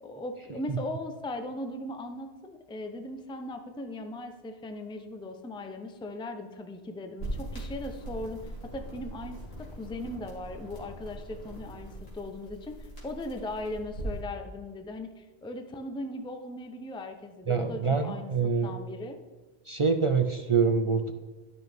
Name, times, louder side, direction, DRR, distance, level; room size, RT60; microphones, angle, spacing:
voice 1, 0.0-19.2, left 1 dB, 5° left, 6 dB, 0.5 m, -38 dB
sound 1, 7.2-14.2, right 1 dB, 70° left, 3.0 m, -40 dB
voice 2, 17.5-18.7 19.7-21.1, right 5 dB, 50° right, 7 dB, 0.4 m, -25 dB
12.0 x 6.1 x 3.5 m, 1.3 s
omnidirectional pair, 1.1 m